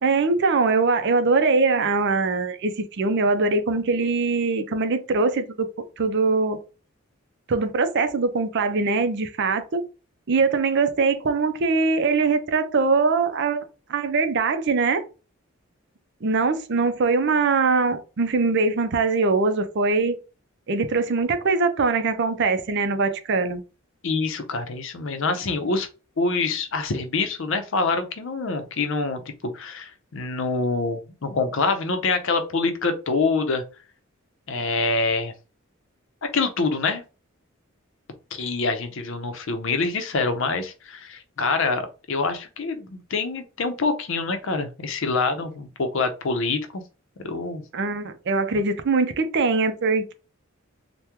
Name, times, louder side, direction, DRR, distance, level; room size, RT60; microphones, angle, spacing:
voice 1, 0.0-5.7 6.0-6.6 7.5-9.8 10.3-13.6 13.9-15.0 16.2-20.2 20.7-23.6 47.7-50.1, right 4 dB, 55° right, 0.5 m, -22 dB
voice 2, 24.0-25.9 26.2-33.6 34.5-35.3 36.2-37.0 38.3-46.8 47.2-47.6, left 3 dB, 65° left, 0.6 m, -25 dB
3.5 x 2.1 x 2.9 m
head